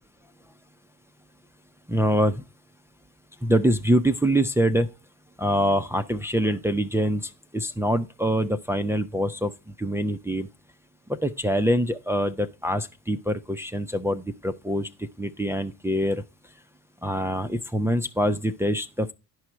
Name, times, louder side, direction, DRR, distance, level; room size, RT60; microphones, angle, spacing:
voice 1, 1.9-2.4 3.4-4.9 5.4-9.5 9.8-10.5 11.2-16.2 17.0-19.1, equal, 5° right, 0.6 m, -24 dB
11.0 x 4.8 x 4.5 m
hypercardioid pair, 75°, 49 cm